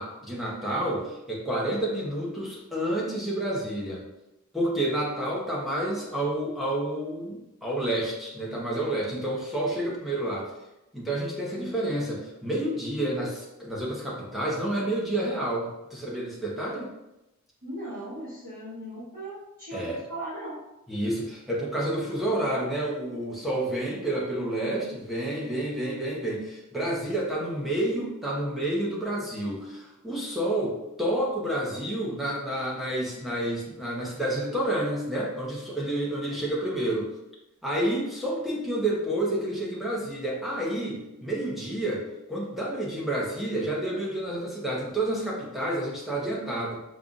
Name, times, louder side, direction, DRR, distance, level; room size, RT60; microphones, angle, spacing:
voice 1, 0.0-4.0 4.5-10.5 10.9-16.9 19.7-20.0 20.9-37.1 37.6-46.8, right 1 dB, ahead, -5 dB, 0.8 m, -29 dB
voice 2, 17.6-20.5, right 1 dB, 40° right, -12 dB, 1.3 m, -38 dB
5.4 x 2.4 x 2.4 m, 0.92 s
head